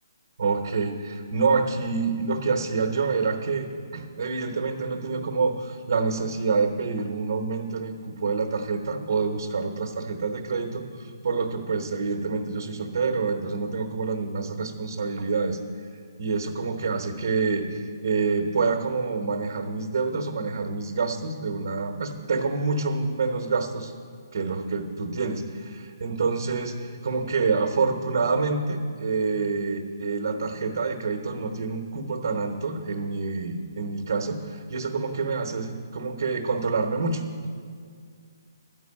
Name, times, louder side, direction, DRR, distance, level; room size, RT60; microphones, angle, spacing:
voice 1, 0.4-23.9 24.3-37.2, right 4 dB, 55° right, 2 dB, 1.0 m, -27 dB
12.5 x 5.4 x 8.6 m, 2.1 s
hypercardioid pair, 165°, 2 cm